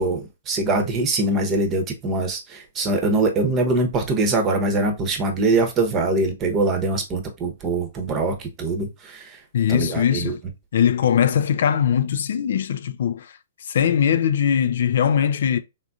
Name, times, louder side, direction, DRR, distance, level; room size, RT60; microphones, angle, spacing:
voice 1, 0.0-9.4 9.7-10.3, right 2 dB, 25° right, 0.8 m, -23 dB
voice 2, 9.5-10.4 10.7-13.3 13.6-15.6, left 8 dB, 60° left, 0.3 m, -20 dB
3.6 x 2.6 x 2.4 m
figure-of-eight pair, 120°, 0 cm